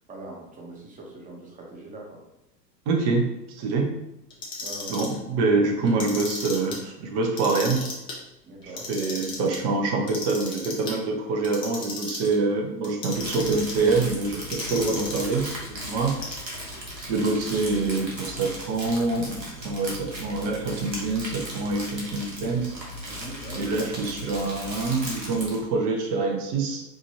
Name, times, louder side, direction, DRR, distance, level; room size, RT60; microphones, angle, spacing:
voice 1, 0.1-2.2 4.6-5.0 8.4-8.9 23.0-24.1, right 2 dB, 15° right, -1 dB, 1.0 m, -42 dB
voice 2, 2.9-3.9 4.9-7.8 8.9-16.1 17.0-22.7 23.5-26.8, right 3 dB, 40° right, 2 dB, 0.9 m, -25 dB
Clock, 4.3-5.2 5.8-6.8 7.2-8.2 8.6-9.6 10.1-10.9 11.4-12.4 12.8-13.9 14.5-15.4 16.1-16.7, left 3 dB, 10° left, 0.3 m, -35 dB
Crumpling crinkling, 13.0-25.6, equal, 90° right, 1.2 m, -37 dB
4.8 x 2.6 x 2.9 m, 0.90 s
figure-of-eight pair, 90°, 49 cm